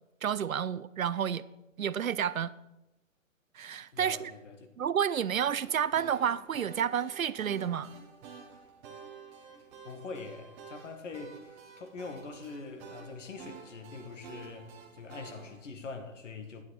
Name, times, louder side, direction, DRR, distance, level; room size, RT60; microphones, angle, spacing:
voice 1, 0.2-1.4 1.8-2.5 3.5-4.3 4.8-7.9, right 8 dB, 80° right, 0.6 m, -30 dB
voice 2, 3.9-4.7 9.8-16.6, left 4 dB, 60° left, 1.7 m, -43 dB
sound 1, 5.7-15.6, right 6 dB, 20° right, 1.2 m, -50 dB
11.5 x 9.6 x 4.0 m
figure-of-eight pair, 130°, 41 cm